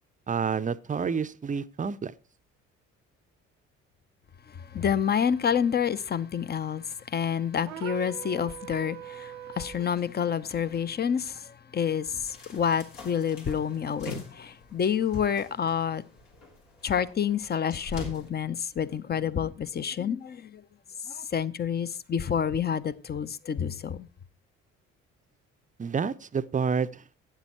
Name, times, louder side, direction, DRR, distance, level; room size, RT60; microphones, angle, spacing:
voice 1, 0.3-2.1 25.8-27.0, right 6 dB, 20° right, 0.6 m, -29 dB
voice 2, 4.5-16.0 16.8-20.6 21.0-24.1, left 8 dB, 25° left, 0.7 m, -28 dB
sound 1, 7.6-9.9, right 13 dB, 75° right, 0.8 m, -41 dB
sound 2, 12.3-18.3, left 1 dB, 70° left, 3.7 m, -44 dB
12.5 x 9.0 x 4.3 m
figure-of-eight pair, 50°, 38 cm